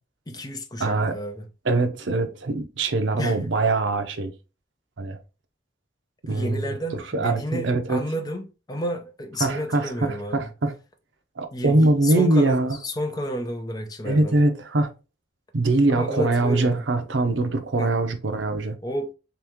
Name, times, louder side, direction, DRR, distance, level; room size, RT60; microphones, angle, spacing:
voice 1, 0.3-1.5 3.2-3.4 6.3-10.5 11.5-14.4 15.9-16.8 17.8-17.9 18.8-19.1, equal, 20° left, 0.6 m, -31 dB
voice 2, 0.8-1.1 1.6-4.3 5.0-5.2 6.2-8.0 9.4-10.7 11.4-12.8 14.0-14.9 15.5-18.8, right 2 dB, 70° right, 0.7 m, -23 dB
3.4 x 3.0 x 3.5 m
head